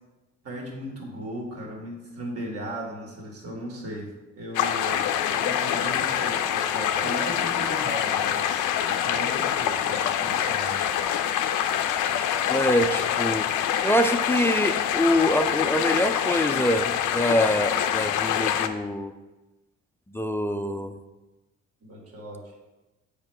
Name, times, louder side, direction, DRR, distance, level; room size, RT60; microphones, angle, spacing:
voice 1, 0.4-4.1 4.4-10.8 21.8-22.4, right 1 dB, 50° right, -2 dB, 2.0 m, -37 dB
sound 1, 4.5-18.7, left 9 dB, 85° left, 0.5 m, -25 dB
voice 2, 12.5-13.5 13.8-19.1 20.1-21.0, left 1 dB, 10° left, 7 dB, 0.3 m, -24 dB
7.1 x 5.1 x 3.3 m, 1.1 s
cardioid pair, 90°, 30 cm